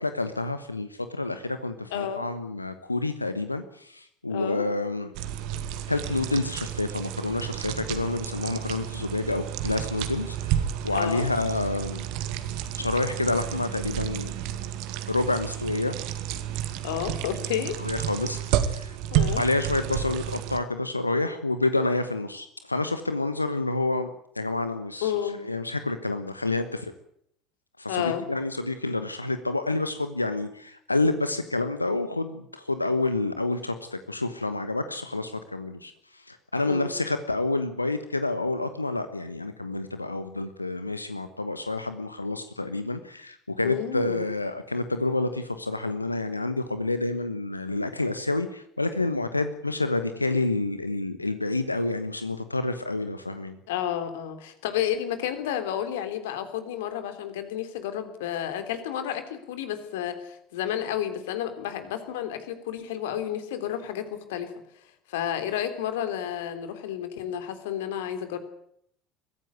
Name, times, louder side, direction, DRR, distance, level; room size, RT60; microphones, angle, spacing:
voice 1, 0.0-5.1 5.9-12.1 12.7-14.3 15.1-15.9 17.8-19.0 19.4-24.1 24.3-25.1 25.4-26.9 27.8-53.6, left 2 dB, 90° left, 10 dB, 1.1 m, -28 dB
voice 2, 1.9-2.3 4.3-4.6 10.9-11.3 16.8-17.8 19.1-19.4 25.0-25.4 27.9-28.2 36.6-36.9 43.6-44.2 53.7-64.5 65.1-68.4, left 10 dB, 65° left, 9 dB, 3.2 m, -31 dB
sound 1, 5.1-20.6, right 11 dB, 60° right, 2.2 m, -31 dB
23.0 x 15.5 x 9.5 m, 0.71 s
figure-of-eight pair, 65°, 0 cm